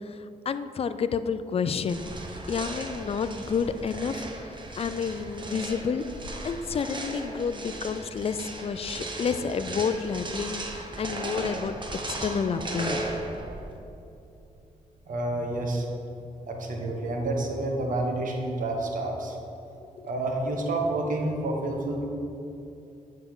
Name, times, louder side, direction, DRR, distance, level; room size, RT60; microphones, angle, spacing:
voice 1, 0.5-2.0 2.5-4.3 4.8-11.7 12.2-13.0, left 6 dB, 45° left, 12 dB, 0.4 m, -29 dB
sound 1, 1.9-13.8, right 2 dB, 35° right, 0.9 m, -36 dB
voice 2, 15.1-15.9 16.5-19.4 20.0-22.1, right 2 dB, 70° right, 1 dB, 1.3 m, -29 dB
9.1 x 5.5 x 3.7 m, 2.7 s
cardioid pair, 70°, 14 cm